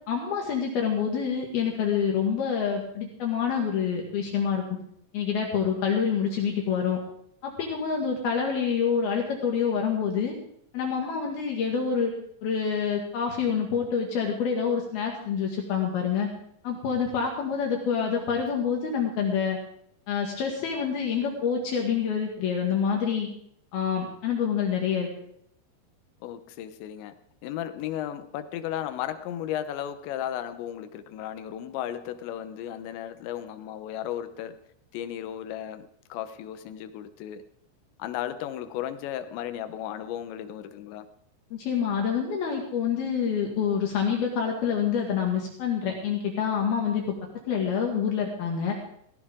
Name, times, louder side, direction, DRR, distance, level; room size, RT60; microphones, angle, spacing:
voice 1, 0.1-4.6 5.1-7.0 7.4-10.3 10.7-12.1 12.4-16.3 16.6-19.6 20.1-23.3 23.7-25.1 41.5-47.2 47.5-48.7, left 7 dB, 65° left, 0 dB, 3.7 m, -27 dB
voice 2, 26.2-27.1 27.4-34.6 34.9-37.4 38.0-41.1, left 11 dB, 85° left, 10 dB, 3.2 m, -35 dB
16.5 x 16.5 x 3.7 m, 0.71 s
omnidirectional pair, 5.1 m